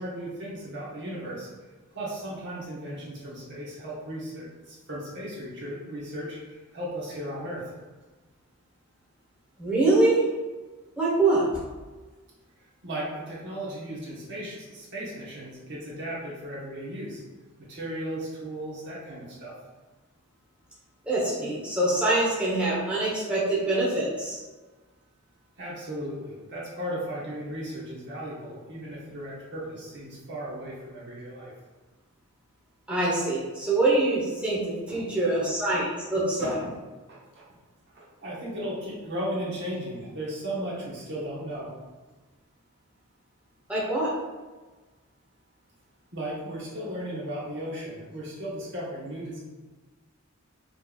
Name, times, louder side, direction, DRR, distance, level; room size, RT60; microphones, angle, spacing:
voice 1, 0.0-1.5 1.9-7.6 12.8-17.2 17.6-19.6 25.6-31.5 34.9-35.0 35.3-35.4 36.4-36.7 37.1-37.5 37.9-41.7 46.1-49.4, right 1 dB, 55° right, -6 dB, 1.2 m, -36 dB
voice 2, 9.6-10.2 11.0-11.4 21.1-24.4 32.9-36.6 43.7-44.1, right 2 dB, 5° right, -8 dB, 1.1 m, -24 dB
5.3 x 3.2 x 2.4 m, 1.3 s
head